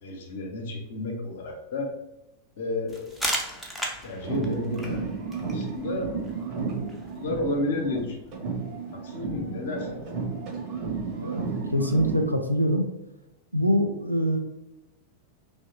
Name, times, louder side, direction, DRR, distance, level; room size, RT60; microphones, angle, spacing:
voice 1, 0.0-1.9 2.6-3.1 4.0-5.0 5.4-6.1 6.4-6.5 7.1-8.2 9.0-9.9, left 2 dB, 55° left, 3 dB, 0.6 m, -31 dB
sound 1, 2.9-8.4, equal, 5° left, 0.5 m, -37 dB
sound 2, 4.1-8.0 8.3-12.3, right 4 dB, 35° right, 1.1 m, -32 dB
voice 2, 11.7-12.8 13.5-14.4, equal, 90° right, 3 dB, 0.4 m, -24 dB
3.1 x 2.0 x 2.7 m, 0.93 s
figure-of-eight pair, 90°, 0 cm